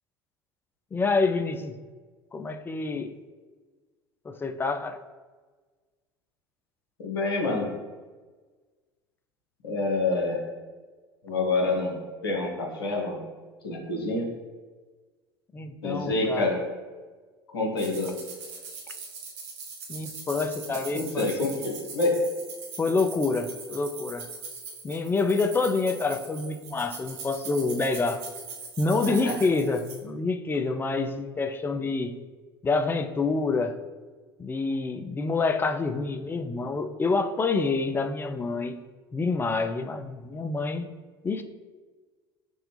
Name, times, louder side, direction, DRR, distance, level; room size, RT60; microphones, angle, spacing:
voice 1, 0.9-1.8 2.3-3.1 4.3-5.0 15.5-16.5 19.9-21.3 22.8-24.3 24.8-28.2 28.8-32.1 32.6-33.7 34.4-38.8 39.1-40.9 41.2-41.4, left 3 dB, 15° left, 8 dB, 0.3 m, -27 dB
voice 2, 7.0-7.7 9.6-10.4 11.2-12.0 12.2-13.2 13.6-14.3 15.8-16.6 17.5-18.2 20.9-22.2 29.0-29.4, left 2 dB, 75° left, 0 dB, 0.9 m, -27 dB
sound 1, 17.8-30.0, right 5 dB, 55° right, 0.9 m, -41 dB
5.3 x 2.9 x 3.3 m, 1.4 s
figure-of-eight pair, 65°, 13 cm